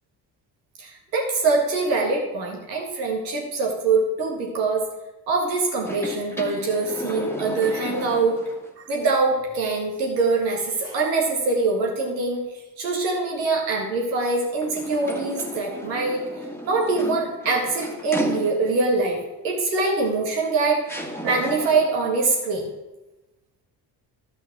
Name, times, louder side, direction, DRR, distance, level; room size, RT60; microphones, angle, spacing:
voice 1, 0.8-4.8 5.3-8.4 8.8-12.4 12.8-16.2 16.7-20.9 21.2-22.6, right 3 dB, 90° right, 0 dB, 1.9 m, -23 dB
sound 1, 5.8-8.7 9.1-9.2 14.6-18.9 20.1-20.2 20.9-22.0, equal, 5° left, 1.6 m, -34 dB
11.5 x 5.8 x 6.0 m, 1.0 s
hypercardioid pair, 50°, 49 cm